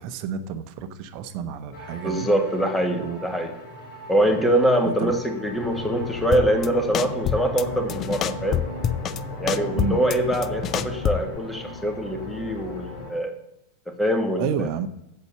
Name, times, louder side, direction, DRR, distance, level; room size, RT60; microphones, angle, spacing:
voice 1, 0.0-2.3 3.0-3.2 4.2-4.3 4.8-5.1 9.7-10.0 14.4-14.9, right 7 dB, 45° right, 10 dB, 0.9 m, -30 dB
sound 1, 1.7-13.1, left 1 dB, 50° left, 3.6 m, -36 dB
voice 2, 2.0-3.5 4.1-8.6 9.4-13.3 13.9-14.7, right 1 dB, 5° left, 4 dB, 1.7 m, -24 dB
sound 2, 6.3-6.7 6.9-7.6 7.9-9.2 9.5-11.4, left 10 dB, 30° left, 0.4 m, -26 dB
8.1 x 8.1 x 6.8 m, 0.81 s
figure-of-eight pair, 90°, 0 cm